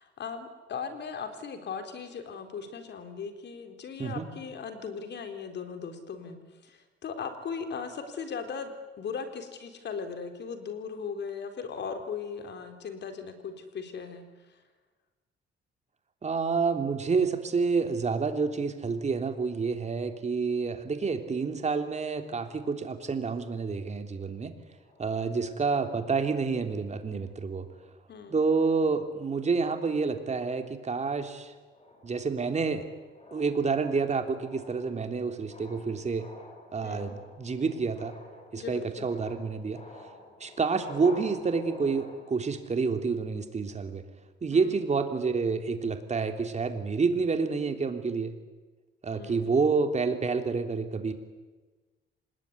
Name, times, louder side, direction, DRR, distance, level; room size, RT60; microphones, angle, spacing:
voice 1, 0.0-8.7 9.0-14.3 28.1-28.4 36.8-37.1 38.6-39.1 44.5-44.8 49.1-49.6, left 6 dB, 60° left, 7 dB, 4.2 m, -38 dB
voice 2, 16.2-24.5 25.0-27.7 28.3-31.5 32.0-32.8 33.3-36.3 36.7-38.1 38.5-39.8 40.4-44.0 44.4-48.3 49.0-51.1, right 4 dB, 35° right, 6 dB, 3.2 m, -28 dB
sound 1, 24.7-26.5 27.2-27.4 27.7-28.1 28.5-29.7 30.2-30.5 30.9-42.5, left 2 dB, 35° left, 7.6 m, -50 dB
26.5 x 20.0 x 9.8 m, 1.3 s
cardioid pair, 90°, 20 cm